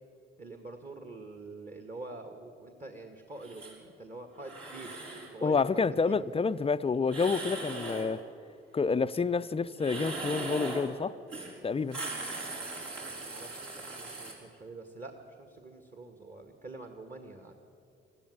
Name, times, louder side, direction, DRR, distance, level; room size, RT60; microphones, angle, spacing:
voice 1, 0.4-6.3 13.0-17.5, right 2 dB, 25° right, 5 dB, 1.9 m, -46 dB
sound 1, 3.4-3.7 4.4-5.3 7.1-8.1 9.7-10.9 11.3-11.5 11.8-14.3, right 2 dB, 60° right, 5.0 m, -39 dB
voice 2, 5.4-8.2 8.7-11.2 11.6-12.0, left 5 dB, 20° left, 15 dB, 0.6 m, -28 dB
18.5 x 14.0 x 9.8 m, 2.6 s
figure-of-eight pair, 45°, 29 cm